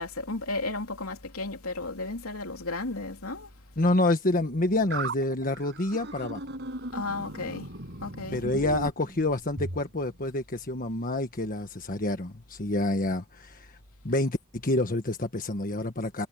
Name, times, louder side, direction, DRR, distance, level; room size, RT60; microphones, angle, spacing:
voice 1, 0.0-3.5 6.9-7.7 8.0-8.4, left 2 dB, 75° left, 3.1 m, -34 dB
voice 2, 3.8-6.4 8.3-13.8 14.0-16.3, left 2 dB, 40° left, 1.5 m, -28 dB
sound 1, 4.9-9.8, right 2 dB, 50° right, 5.3 m, -37 dB
head